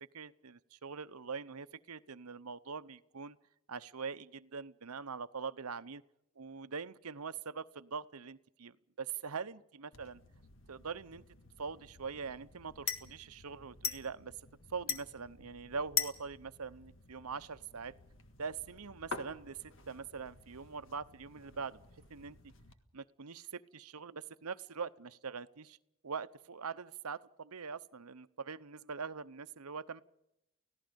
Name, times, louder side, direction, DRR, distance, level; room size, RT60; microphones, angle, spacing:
voice 1, 0.1-3.4 3.7-6.0 6.4-10.2 10.7-11.2 11.6-14.3 14.7-18.0 18.4-21.8 22.1-22.4 22.9-25.8 26.0-30.0, right 5 dB, 85° right, 13 dB, 0.9 m, -43 dB
sound 1, 9.9-22.7, left 7 dB, 60° left, 1.8 m, -44 dB
30.0 x 17.0 x 5.3 m, 0.83 s
head